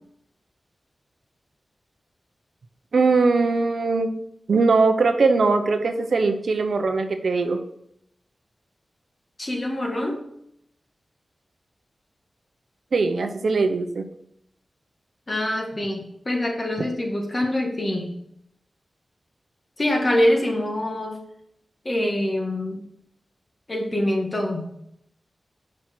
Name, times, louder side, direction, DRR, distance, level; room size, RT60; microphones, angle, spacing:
voice 1, 2.9-4.1 4.5-7.6 12.9-14.1, right 4 dB, 70° right, 6 dB, 0.7 m, -20 dB
voice 2, 9.4-10.2 15.3-18.1 19.8-21.2 21.8-22.8 23.7-24.7, left 1 dB, 30° left, 1 dB, 1.4 m, -24 dB
6.2 x 5.3 x 4.3 m, 0.74 s
wide cardioid pair, 135°, 0 cm